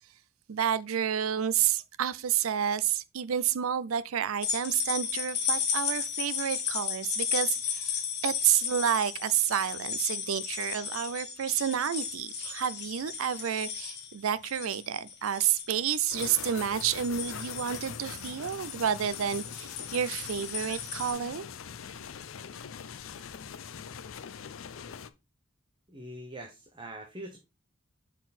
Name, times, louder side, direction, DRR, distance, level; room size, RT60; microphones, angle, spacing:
voice 1, 0.5-8.0 8.2-21.5, right 9 dB, 85° right, 0.5 m, -30 dB
sound 1, 4.4-21.1, left 7 dB, 55° left, 1.9 m, -35 dB
sound 2, 16.1-25.1, left 7 dB, 70° left, 0.5 m, -42 dB
voice 2, 25.9-27.4, right 1 dB, 25° right, 1.0 m, -43 dB
6.0 x 4.5 x 4.1 m
head